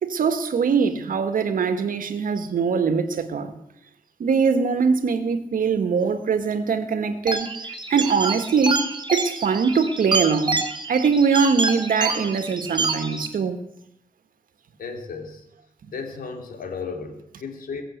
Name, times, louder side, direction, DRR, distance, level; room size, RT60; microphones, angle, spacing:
voice 1, 0.0-3.5 4.2-7.5 7.9-8.8 9.1-10.6 10.9-13.6, right 5 dB, 75° right, 1.8 m, -22 dB
sound 1, 7.3-13.3, right 3 dB, 30° right, 2.4 m, -27 dB
voice 2, 14.8-15.4 15.9-17.8, left 5 dB, 80° left, 3.0 m, -34 dB
21.5 x 7.5 x 8.2 m
cardioid pair, 95°, 14 cm